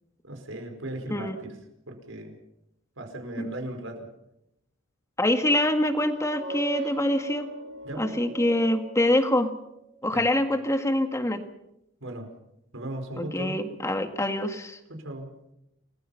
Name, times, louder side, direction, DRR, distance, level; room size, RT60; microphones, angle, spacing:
voice 1, 0.2-1.6 1.9-2.4 3.0-4.1 7.8-8.2 10.1-10.3 12.0-12.3 12.7-13.6 14.9-15.4, right 1 dB, 80° right, 5 dB, 4.9 m, -37 dB
voice 2, 5.2-7.5 8.0-9.5 10.0-11.4 13.2-14.8, left 1 dB, 15° left, 7 dB, 1.8 m, -25 dB
sound 1, 6.1-9.6, right 3 dB, 60° right, 7.4 m, -39 dB
29.0 x 20.5 x 5.7 m, 0.83 s
head